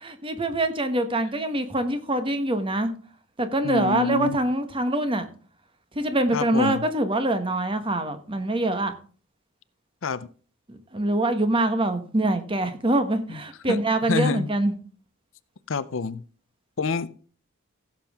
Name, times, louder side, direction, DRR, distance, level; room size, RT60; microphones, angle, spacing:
voice 1, 0.0-2.9 3.4-5.3 5.9-8.9 10.7-14.7, right 1 dB, 25° right, 1.2 m, -24 dB
voice 2, 3.6-4.4 6.3-6.8 10.0-10.3 13.3-13.4 13.7-13.8 14.1-14.5 15.7-16.2 16.8-17.1, left 4 dB, 65° left, 0.6 m, -27 dB
16.0 x 7.4 x 3.6 m
head